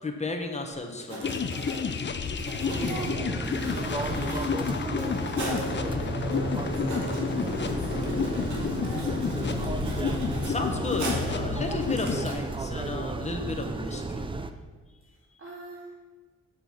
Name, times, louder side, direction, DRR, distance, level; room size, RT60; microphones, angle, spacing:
voice 1, 0.0-1.4 10.4-14.3, left 3 dB, 25° left, 3 dB, 1.1 m, -33 dB
Writing, 1.0-5.7 6.3-6.4 6.6-11.4 11.8-12.3, right 1 dB, 75° right, 2.3 m, -40 dB
sound 1, 1.2-12.3, left 6 dB, 40° left, 0.6 m, -31 dB
sound 2, 2.7-14.5, right 3 dB, 20° right, 0.5 m, -33 dB
voice 2, 2.7-3.2 3.6-10.1 15.0-15.9, right 1 dB, 45° right, -3 dB, 1.3 m, -41 dB
7.9 x 6.3 x 5.9 m, 1.3 s
wide cardioid pair, 130°, 29 cm